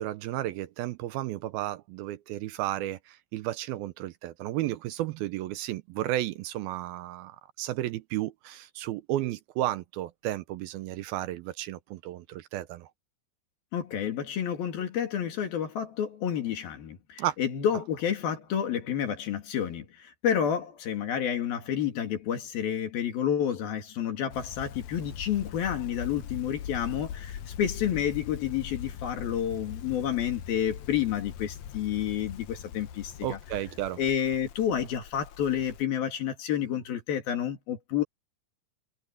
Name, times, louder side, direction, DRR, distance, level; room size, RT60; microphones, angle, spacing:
voice 1, 0.0-12.9 17.2-17.4 33.2-34.0, right 14 dB, 80° right, 2.4 m, -33 dB
voice 2, 13.7-33.4 34.0-38.0, left 9 dB, 65° left, 4.1 m, -30 dB
sound 1, 24.3-35.8, left 9 dB, 90° left, 1.6 m, -41 dB
omnidirectional pair, 4.7 m